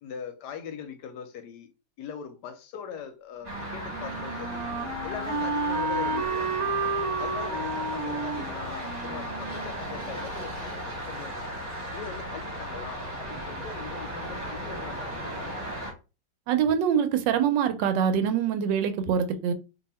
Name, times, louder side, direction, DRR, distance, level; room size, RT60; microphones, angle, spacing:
voice 1, 0.0-1.7 2.0-4.7 5.0-6.5 7.2-11.4 11.9-15.5, left 7 dB, 75° left, 1.1 m, -41 dB
sound 1, 3.4-15.9, equal, 25° right, 1.0 m, -36 dB
Wind instrument woodwind instrument, 3.5-10.3, right 3 dB, 60° right, 1.0 m, -32 dB
voice 2, 16.5-19.5, right 8 dB, 80° right, 1.2 m, -24 dB
2.7 x 2.6 x 4.1 m
omnidirectional pair, 2.0 m